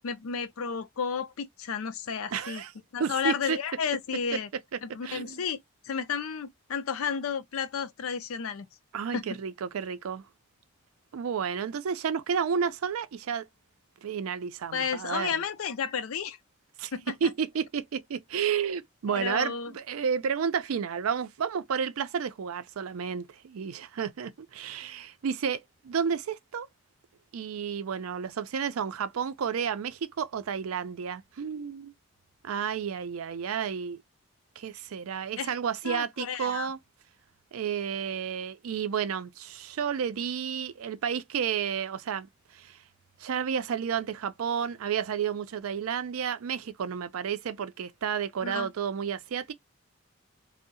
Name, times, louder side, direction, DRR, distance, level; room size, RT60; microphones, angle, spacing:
voice 1, 0.0-2.6 2.9-4.5 4.8-8.7 9.1-9.3 14.7-16.4 16.9-17.1 19.1-19.7 35.4-35.5 35.8-36.7 48.4-48.7, left 6 dB, 80° left, 0.5 m, -32 dB
voice 2, 2.3-2.7 3.0-3.6 4.3-4.4 5.0-5.4 8.9-10.2 11.1-13.4 14.0-15.3 16.8-16.9 17.2-26.7 27.3-31.9 32.4-34.0 34.6-36.8 37.5-42.3 42.5-42.8 43.2-49.5, right 7 dB, 80° right, 0.4 m, -31 dB
2.6 x 2.0 x 2.5 m
head